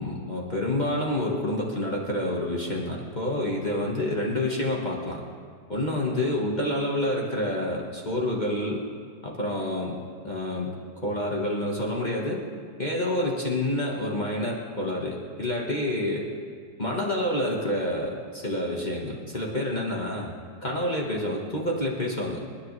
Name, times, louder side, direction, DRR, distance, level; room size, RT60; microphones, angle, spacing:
voice 1, 0.0-5.2 5.7-8.8 9.2-9.9 10.2-10.7 11.0-12.4 12.8-16.3 16.8-20.3 20.6-22.5, left 1 dB, 25° left, -3 dB, 1.5 m, -28 dB
27.0 x 10.5 x 3.2 m, 2.1 s
omnidirectional pair, 1.8 m